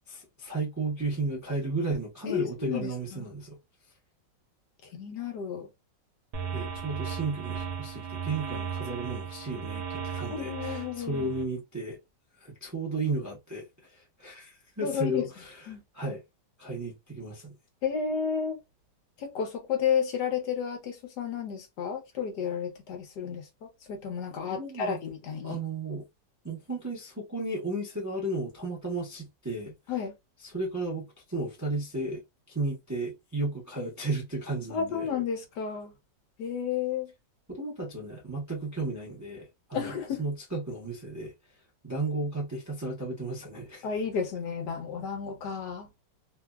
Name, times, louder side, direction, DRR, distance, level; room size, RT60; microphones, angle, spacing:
voice 1, 0.1-3.6 6.5-12.0 12.4-15.6 15.9-16.2 16.6-17.5 24.5-25.0 25.4-26.0 26.4-29.7 30.4-32.2 32.5-35.1 37.5-41.3 41.8-43.9, right 2 dB, 25° right, 0.4 m, -34 dB
voice 2, 2.3-3.3 4.8-5.7 10.3-11.2 14.8-15.3 15.7-15.8 17.8-18.6 19.2-25.6 29.9-30.1 34.7-35.9 36.4-37.1 39.7-40.2 43.8-45.9, left 7 dB, 75° left, 1.4 m, -32 dB
sound 1, 6.3-11.4, right 7 dB, 75° right, 1.2 m, -36 dB
3.3 x 2.1 x 2.3 m
omnidirectional pair, 1.9 m